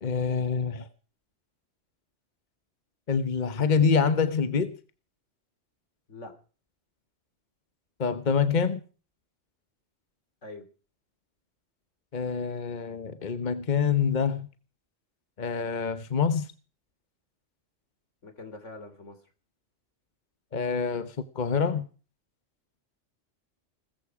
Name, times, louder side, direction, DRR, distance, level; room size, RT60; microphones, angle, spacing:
voice 1, 0.0-0.9 3.1-4.7 8.0-8.8 12.1-14.5 15.4-16.5 20.5-21.9, left 6 dB, 40° left, 1.1 m, -26 dB
voice 2, 18.2-19.2, left 2 dB, 75° left, 3.6 m, -43 dB
20.5 x 14.0 x 4.9 m
omnidirectional pair, 1.3 m